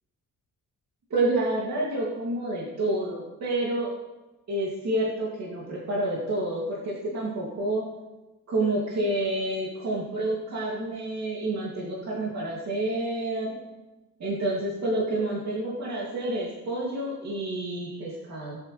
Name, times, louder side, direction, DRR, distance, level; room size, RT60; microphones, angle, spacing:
voice 1, 1.1-3.9 4.5-7.9 8.5-13.6 14.2-18.6, right 1 dB, 55° right, -5 dB, 2.6 m, -29 dB
18.5 x 8.3 x 3.3 m, 1.1 s
cardioid pair, 145°, 32 cm